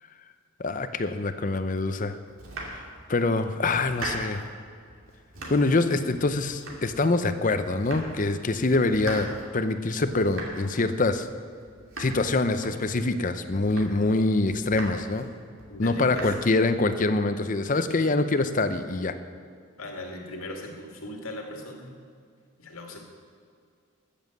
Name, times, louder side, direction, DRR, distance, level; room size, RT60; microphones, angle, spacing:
voice 1, 0.6-2.2 3.1-4.4 5.5-11.3 12.0-15.3 15.8-19.1, left 2 dB, 40° left, 10 dB, 0.6 m, -25 dB
Domestic sounds home sounds, 2.3-3.2 3.6-4.5 4.9-5.8 6.1-7.2 7.5-8.3 8.6-13.1 13.5-14.2 14.5-15.3 15.6-16.3, right 2 dB, 75° right, 2.5 m, -40 dB
voice 2, 15.7-16.3 19.8-21.9 22.6-23.0, left 1 dB, 85° left, 1 dB, 2.2 m, -39 dB
13.5 x 7.3 x 7.7 m, 2.2 s
head